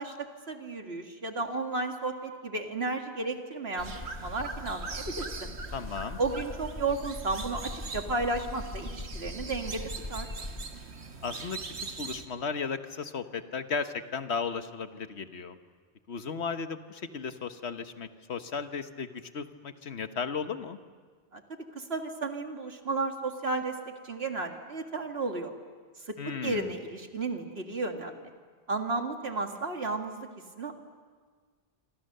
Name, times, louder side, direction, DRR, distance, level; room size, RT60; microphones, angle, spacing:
voice 1, 0.0-5.5 6.2-9.8 10.1-10.3 21.3-21.4 21.8-23.8 24.0-25.5 26.1-26.2 26.4-28.2 28.7-30.3 30.6-30.7, right 3 dB, 70° right, 4 dB, 2.3 m, -33 dB
sound 1, 3.8-10.6, left 1 dB, 45° left, 2.5 m, -41 dB
sound 2, 3.8-12.3, right 4 dB, 90° right, 1.8 m, -42 dB
voice 2, 5.7-6.2 11.2-15.6 16.1-20.8 26.2-26.7, left 5 dB, 90° left, 9 dB, 1.5 m, -35 dB
27.0 x 26.0 x 6.7 m, 1.5 s
omnidirectional pair, 1.1 m